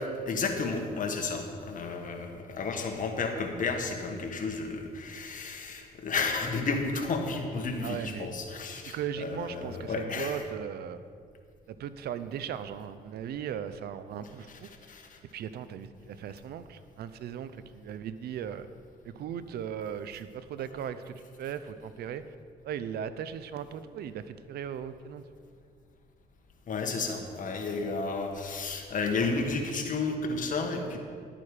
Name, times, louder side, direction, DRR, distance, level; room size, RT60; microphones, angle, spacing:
voice 1, 0.0-10.3 14.9-15.2 26.7-31.0, left 4 dB, 50° left, 3 dB, 1.7 m, -32 dB
voice 2, 7.8-8.3 8.9-11.0 11.7-14.7 15.3-18.7 19.0-22.3 22.6-25.2, right 8 dB, 70° right, 13 dB, 0.6 m, -38 dB
11.5 x 8.9 x 5.0 m, 2.2 s
cardioid pair, 80°, 17 cm